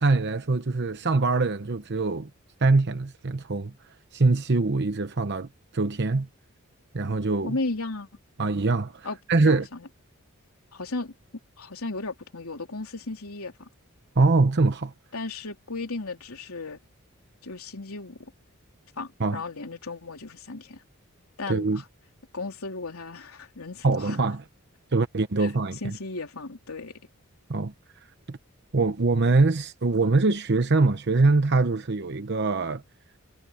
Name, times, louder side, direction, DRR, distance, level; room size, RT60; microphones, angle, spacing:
voice 1, 0.0-2.3 2.6-3.7 4.1-6.3 6.9-7.6 8.4-9.7 14.2-14.9 19.2-19.4 21.5-21.8 23.8-24.4 24.9-25.9 27.5-27.7 28.3-28.4 28.7-32.8, right 3 dB, 55° right, 0.9 m, -23 dB
voice 2, 7.4-8.1 9.0-9.2 9.4-9.9 10.7-11.1 11.6-13.7 15.1-16.8 17.4-18.3 19.0-20.8 21.4-21.8 22.3-24.2 25.4-27.0, left 3 dB, 80° left, 3.4 m, -35 dB
head